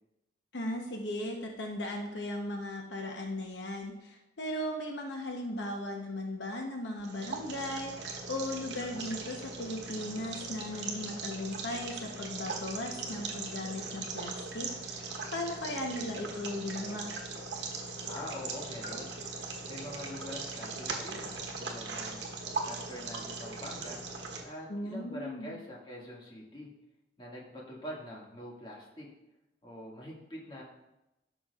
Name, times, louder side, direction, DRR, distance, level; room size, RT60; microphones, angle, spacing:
voice 1, 0.5-17.1 24.7-25.6, left 1 dB, 80° left, 2 dB, 0.9 m, -37 dB
sound 1, 7.0-24.4, right 4 dB, 75° right, 1.1 m, -40 dB
voice 2, 18.0-19.1 19.7-22.2 22.6-24.0 24.4-26.7 27.2-29.1 29.6-30.6, equal, 30° left, -4 dB, 1.9 m, -44 dB
12.5 x 6.1 x 2.4 m, 0.90 s
head